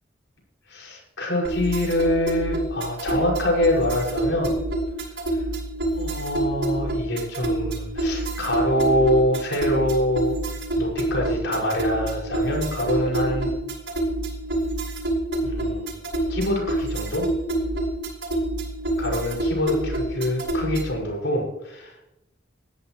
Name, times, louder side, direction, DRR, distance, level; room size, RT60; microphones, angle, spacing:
voice 1, 0.7-4.6 5.3-5.4 5.9-10.4 10.8-13.5 15.4-16.0 16.3-17.3 19.0-22.0, left 1 dB, 85° left, -2 dB, 6.0 m, -25 dB
sound 1, 1.4-21.0, right 1 dB, 85° right, 5.6 m, -27 dB
20.5 x 13.5 x 3.2 m, 0.89 s
head